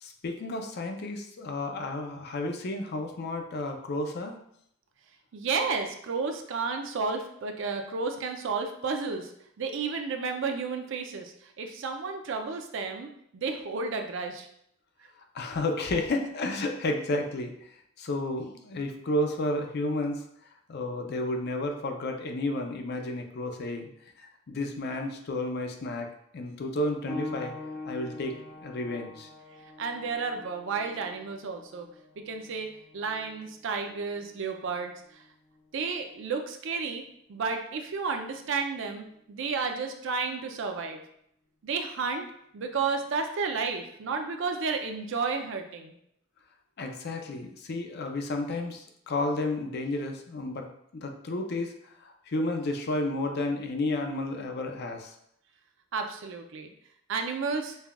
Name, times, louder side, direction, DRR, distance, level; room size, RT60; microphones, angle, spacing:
voice 1, 0.0-4.4 15.3-17.7 18.0-20.2 20.7-23.9 24.2-26.1 26.3-27.5 27.8-28.3 28.6-29.3 46.8-50.7 50.9-55.1, left 2 dB, 50° left, 4 dB, 0.5 m, -32 dB
voice 2, 5.3-9.3 9.6-14.5 29.8-31.9 32.2-32.7 32.9-35.2 35.7-37.0 37.3-41.0 41.6-42.3 42.5-45.9 55.9-56.7 57.1-57.8, right 4 dB, 65° right, 5 dB, 0.4 m, -32 dB
sound 1, 27.1-37.3 38.2-38.4 39.1-39.2, left 2 dB, 10° left, 0.6 m, -45 dB
5.4 x 2.3 x 2.2 m, 0.72 s
head